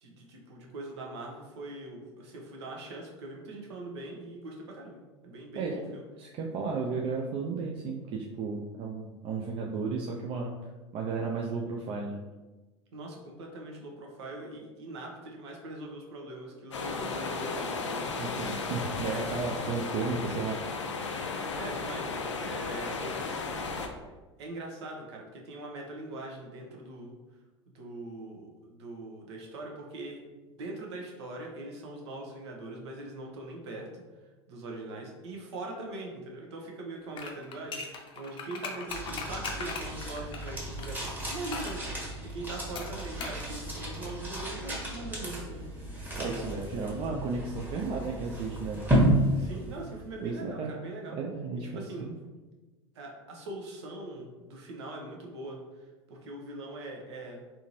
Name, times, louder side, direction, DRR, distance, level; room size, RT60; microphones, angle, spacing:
voice 1, 0.0-6.0 12.9-18.1 19.6-19.8 21.5-23.4 24.4-27.1 27.7-30.2 30.6-34.0 34.5-45.7 49.4-51.2 51.6-52.1 52.9-57.4, right 2 dB, 65° right, 0 dB, 0.8 m, -42 dB
voice 2, 6.2-10.5 10.9-12.2 18.2-20.8 46.2-48.8 50.2-50.7 51.1-52.1, right 4 dB, 40° right, 0 dB, 0.5 m, -34 dB
sound 1, 16.7-23.9, left 4 dB, 85° left, 0.4 m, -34 dB
sound 2, 37.1-40.9 41.5-41.8 42.8-43.4 43.7-43.8, left 4 dB, 35° left, 0.6 m, -39 dB
sound 3, 38.9-50.2, equal, 15° right, 1.2 m, -32 dB
3.5 x 2.8 x 2.9 m, 1.2 s
figure-of-eight pair, 80°, 15 cm